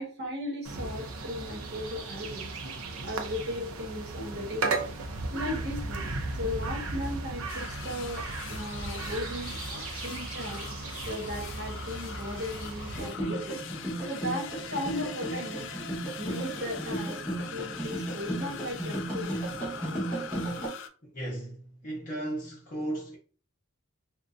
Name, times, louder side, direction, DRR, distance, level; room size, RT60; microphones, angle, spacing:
voice 1, 0.0-2.5 3.0-4.8 5.3-6.1 6.3-10.7 11.1-13.6 14.0-15.7 16.2-19.3, left 1 dB, 50° right, 1.0 m, -36 dB
sound 1, 0.6-13.1, right 3 dB, 85° right, 0.5 m, -36 dB
sound 2, 7.5-20.9, left 8 dB, 60° left, 0.3 m, -43 dB
sound 3, 12.9-20.7, right 1 dB, 5° left, 0.9 m, -35 dB
voice 2, 21.1-23.2, right 1 dB, 40° left, 0.7 m, -35 dB
2.5 x 2.1 x 2.3 m
head